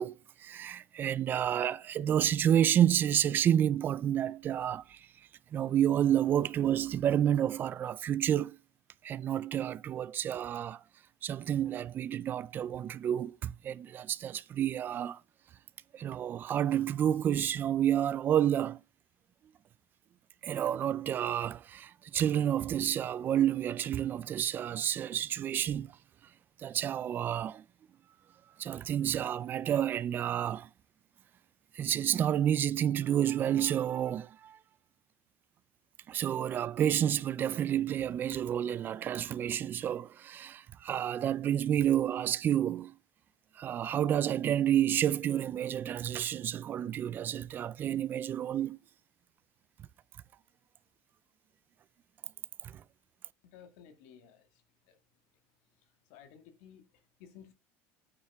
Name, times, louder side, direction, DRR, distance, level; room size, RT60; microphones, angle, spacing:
voice 1, 0.0-5.1 5.5-8.6 9.0-10.8 11.2-15.2 15.9-18.8 20.4-25.9 26.6-27.6 28.6-30.7 31.7-34.6 36.1-42.9 43.6-48.8 52.6-52.8, right 10 dB, 30° right, 0.4 m, -30 dB
voice 2, 53.4-55.0 55.8-57.5, left 8 dB, 85° left, 1.8 m, -56 dB
9.0 x 7.6 x 3.5 m
cardioid pair, 150°, 6 cm